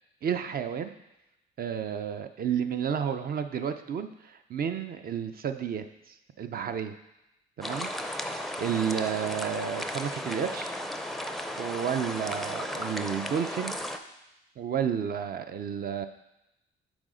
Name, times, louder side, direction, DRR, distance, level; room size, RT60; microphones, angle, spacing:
voice 1, 0.2-0.9 1.6-6.9 7.6-7.9 8.2-8.3 8.6-10.8 11.6-13.7 14.6-16.1, right 8 dB, 50° right, 9 dB, 0.5 m, -31 dB
sound 1, 7.6-14.0, left 1 dB, ahead, 0.5 m, -35 dB
6.2 x 4.2 x 5.0 m, 0.91 s
cardioid pair, 90°, 20 cm